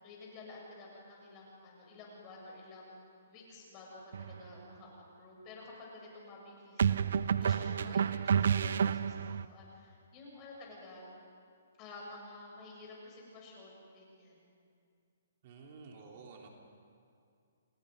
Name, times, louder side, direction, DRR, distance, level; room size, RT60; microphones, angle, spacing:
voice 1, 0.0-3.0 3.3-4.9 5.2-11.1 11.8-14.4, left 2 dB, 25° left, -2 dB, 7.9 m, -51 dB
sound 1, 4.1-4.4 6.8-9.5, right 7 dB, 70° right, 0.6 m, -30 dB
voice 2, 15.4-16.5, right 4 dB, 45° right, 0 dB, 3.3 m, -51 dB
29.0 x 20.5 x 5.4 m, 2.4 s
hypercardioid pair, 150°, 0 cm